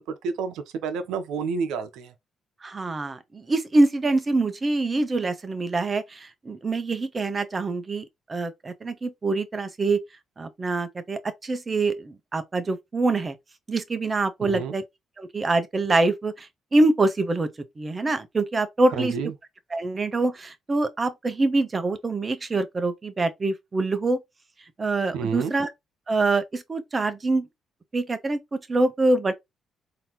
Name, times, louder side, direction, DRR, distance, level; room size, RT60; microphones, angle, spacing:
voice 1, 0.0-2.1 14.5-14.7 18.9-19.3 25.1-25.5, right 5 dB, 90° right, 0.7 m, -29 dB
voice 2, 2.6-10.0 10.4-13.3 13.7-14.8 15.2-17.5 17.8-19.2 19.7-24.2 24.8-25.7 26.1-27.5 27.9-29.3, right 2 dB, 30° right, 0.8 m, -25 dB
3.8 x 2.8 x 2.9 m
cardioid pair, 90°, 0 cm